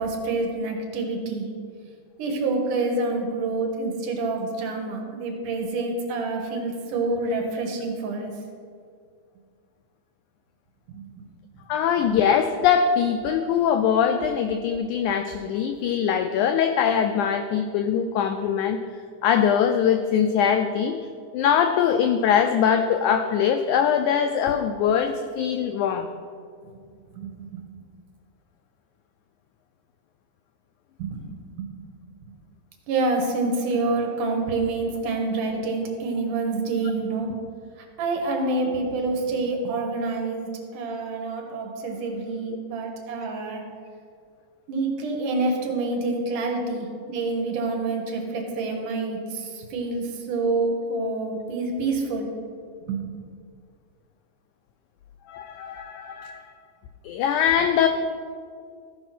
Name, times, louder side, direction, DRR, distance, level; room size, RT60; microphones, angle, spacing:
voice 1, 0.0-1.5 2.2-8.3 10.9-11.2 26.6-26.8 27.1-27.6 31.0-31.3 31.6-31.7 32.9-37.4 37.8-43.6 44.7-52.3 52.9-53.0, right 3 dB, 70° right, 1 dB, 2.7 m, -27 dB
voice 2, 11.7-18.8 19.2-21.0 21.3-26.1 55.3-56.5 57.0-57.9, left 8 dB, 85° left, 7 dB, 1.7 m, -22 dB
14.5 x 5.0 x 5.8 m, 2.2 s
omnidirectional pair, 4.0 m